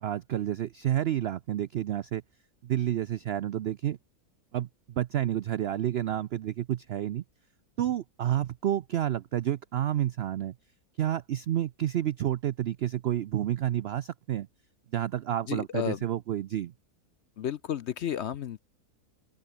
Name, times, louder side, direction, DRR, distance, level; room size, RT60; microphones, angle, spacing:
voice 1, 0.0-2.2 2.6-4.0 4.5-7.2 7.8-10.5 11.0-14.5 14.9-16.7, right 11 dB, 85° right, 0.5 m, -30 dB
voice 2, 15.5-16.0 17.4-18.6, left 9 dB, 60° left, 0.7 m, -32 dB
open air
omnidirectional pair, 1.6 m